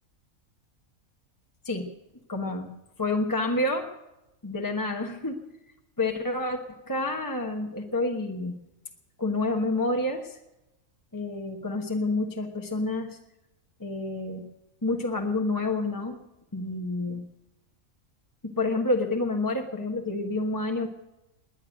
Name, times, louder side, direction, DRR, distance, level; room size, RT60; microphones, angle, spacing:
voice 1, 2.3-2.7 3.0-3.9 4.4-5.4 6.0-8.5 9.2-10.4 11.1-13.2 13.8-14.4 14.8-16.2 16.5-17.2 18.4-20.9, left 2 dB, 15° left, 2 dB, 1.1 m, -28 dB
21.0 x 9.6 x 6.4 m, 0.96 s
omnidirectional pair, 1.4 m